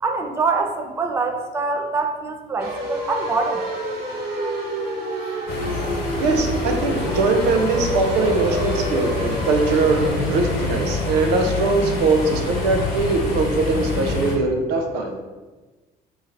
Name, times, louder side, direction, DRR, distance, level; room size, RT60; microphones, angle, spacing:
voice 1, 0.0-3.6, right 4 dB, 15° right, 4 dB, 0.4 m, -24 dB
sound 1, 2.6-10.1, right 1 dB, 65° right, 1.3 m, -28 dB
sound 2, 5.5-14.4, left 2 dB, 65° left, 1.1 m, -26 dB
voice 2, 6.2-15.2, right 3 dB, 85° right, 4 dB, 0.5 m, -21 dB
3.0 x 2.8 x 3.7 m, 1.2 s
cardioid pair, 110°, 17 cm